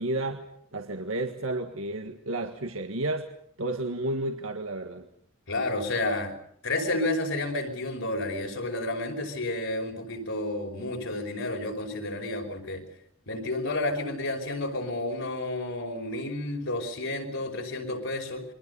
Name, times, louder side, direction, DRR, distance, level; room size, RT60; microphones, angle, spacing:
voice 1, 0.0-3.3 3.6-5.1, right 2 dB, 85° right, 4 dB, 1.8 m, -32 dB
voice 2, 5.5-6.4 6.6-12.8 13.3-18.4, left 2 dB, 70° left, 3 dB, 5.6 m, -31 dB
29.5 x 23.5 x 5.5 m, 0.66 s
head